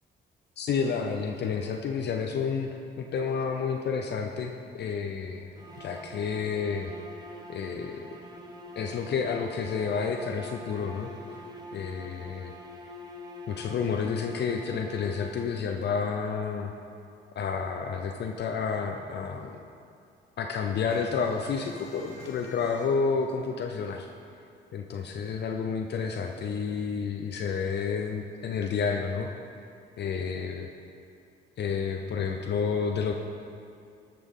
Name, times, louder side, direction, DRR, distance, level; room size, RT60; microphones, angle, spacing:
voice 1, 0.6-2.7 3.0-5.5 5.8-6.9 7.5-8.1 8.8-11.1 11.7-12.5 13.5-16.7 17.4-19.6 20.4-24.1 24.7-29.3 30.0-30.7 31.6-33.1, left 5 dB, 60° left, 3 dB, 0.6 m, -30 dB
sound 1, 5.6-15.8, left 1 dB, 20° right, 1.0 m, -45 dB
sound 2, 20.9-24.2 24.5-24.6 24.9-25.9, left 1 dB, 90° left, 1.7 m, -50 dB
13.0 x 5.9 x 3.7 m, 2.4 s
cardioid pair, 90°, 20 cm